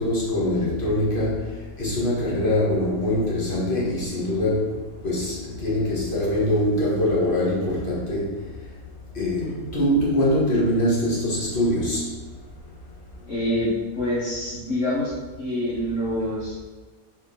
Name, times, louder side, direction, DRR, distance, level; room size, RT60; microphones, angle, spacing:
voice 1, 0.0-1.4 1.8-4.6 5.0-5.3 5.6-8.3 9.2-9.5 9.7-12.0, left 1 dB, 35° left, -7 dB, 1.9 m, -23 dB
voice 2, 13.3-13.7 13.9-15.1 15.4-16.6, left 1 dB, 55° left, -8 dB, 1.7 m, -26 dB
5.0 x 4.3 x 5.6 m, 1.3 s
omnidirectional pair, 1.6 m